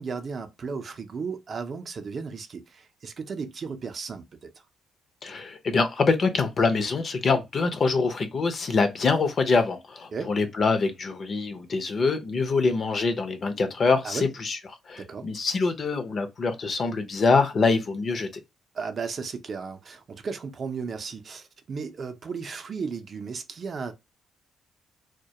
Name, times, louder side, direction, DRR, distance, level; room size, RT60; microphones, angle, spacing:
voice 1, 0.0-4.5 10.1-10.3 14.0-14.3 15.0-15.3 18.7-23.9, right 5 dB, 45° right, 0.4 m, -35 dB
voice 2, 5.2-14.6 14.9-18.3, left 4 dB, 45° left, 0.5 m, -24 dB
2.2 x 2.1 x 2.7 m
cardioid pair, 90°, 0 cm